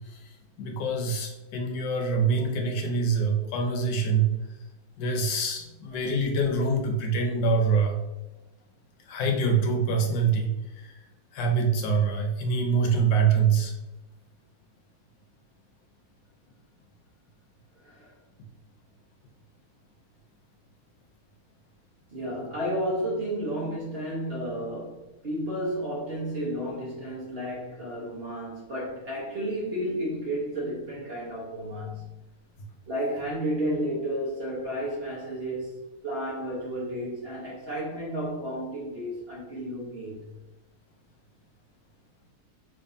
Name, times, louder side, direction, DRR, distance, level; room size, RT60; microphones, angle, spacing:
voice 1, 0.6-4.3 5.0-8.0 9.1-10.9 11.3-13.7, right 4 dB, 70° left, 1 dB, 1.2 m, -25 dB
voice 2, 17.8-18.1 22.1-32.1 32.9-35.8 36.0-40.3, equal, 65° right, -6 dB, 0.5 m, -32 dB
3.4 x 3.3 x 2.6 m, 0.99 s
omnidirectional pair, 2.2 m